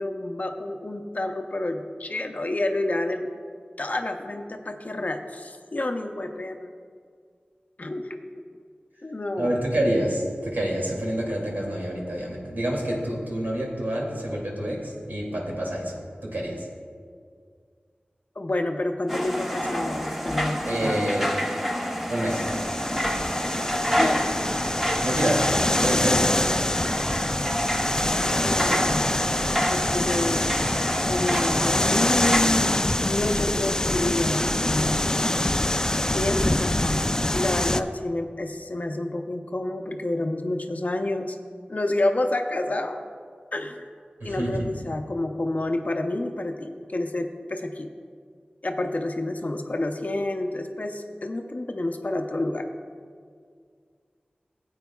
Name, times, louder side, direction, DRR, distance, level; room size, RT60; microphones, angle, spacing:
voice 1, 0.0-3.3 3.8-6.7 7.8-8.2 9.0-9.6 18.4-20.9 24.0-24.2 28.2-29.3 29.7-30.4 31.0-35.0 36.1-37.0 37.3-41.4 41.7-43.0 43.5-43.8 44.2-47.9 48.6-52.7, left 2 dB, 50° left, 5 dB, 0.7 m, -29 dB
voice 2, 9.4-16.7 20.6-21.3 22.1-22.4 25.0-25.4 25.8-26.9 44.2-44.7, right 1 dB, 75° right, -3 dB, 2.5 m, -27 dB
sound 1, 19.1-32.4, equal, 5° right, 0.9 m, -28 dB
sound 2, 22.3-37.8, left 1 dB, 20° left, 0.3 m, -25 dB
15.0 x 8.5 x 2.3 m, 2.1 s
wide cardioid pair, 45°, 3 cm